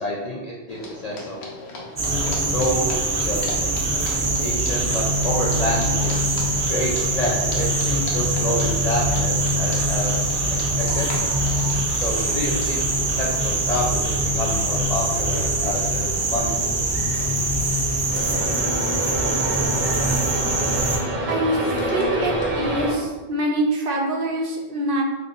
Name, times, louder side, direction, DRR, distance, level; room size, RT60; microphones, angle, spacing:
voice 1, 0.0-1.4 2.0-3.4 3.9-4.0 4.4-6.2 6.7-10.4 10.6-11.2 12.0-12.8 13.2-16.5 16.7-16.9, left 1 dB, 60° left, -4 dB, 0.4 m, -28 dB
sound 1, 0.7-13.4, left 2 dB, 75° left, 0.9 m, -38 dB
sound 2, 2.0-21.0, right 2 dB, 45° right, 0.3 m, -23 dB
sound 3, 18.1-22.9, right 1 dB, 25° right, 0.7 m, -26 dB
voice 2, 21.3-25.0, right 1 dB, 60° right, 0 dB, 0.7 m, -25 dB
2.6 x 2.5 x 3.8 m, 1.2 s
omnidirectional pair, 1.1 m